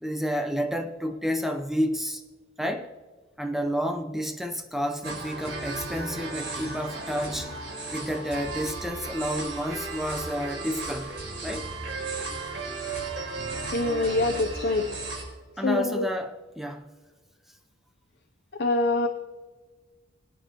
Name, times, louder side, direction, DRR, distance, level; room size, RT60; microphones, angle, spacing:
voice 1, 0.0-2.2 2.6-2.9 3.4-7.5 7.9-11.2 11.4-11.7 15.6-16.9, equal, ahead, 6 dB, 0.7 m, -30 dB
sound 1, 5.0-15.2, right 3 dB, 70° right, 4.1 m, -35 dB
voice 2, 13.7-14.9 15.6-16.1 18.5-19.1, left 2 dB, 55° left, 3 dB, 0.6 m, -25 dB
23.0 x 9.1 x 2.9 m, 1.4 s
head